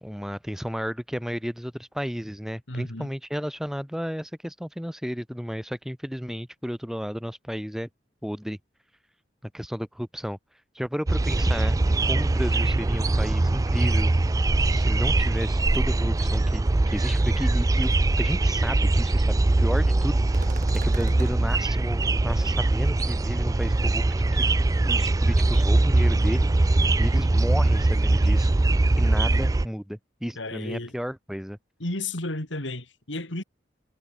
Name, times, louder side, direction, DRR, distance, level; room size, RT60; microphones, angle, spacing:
voice 1, 0.0-7.9 8.2-8.6 9.5-10.4 10.7-14.1 14.7-17.9 18.2-20.6 20.8-24.4 24.8-28.6 29.0-31.6, equal, ahead, 2.2 m, -33 dB
voice 2, 2.7-3.1 30.4-30.9 31.8-33.4, left 2 dB, 80° left, 3.6 m, -33 dB
sound 1, 11.1-29.7, right 2 dB, 20° right, 0.3 m, -22 dB
sound 2, 16.8-16.9 17.3-17.6 17.8-17.9 20.3-21.4, right 1 dB, 45° right, 4.0 m, -39 dB
head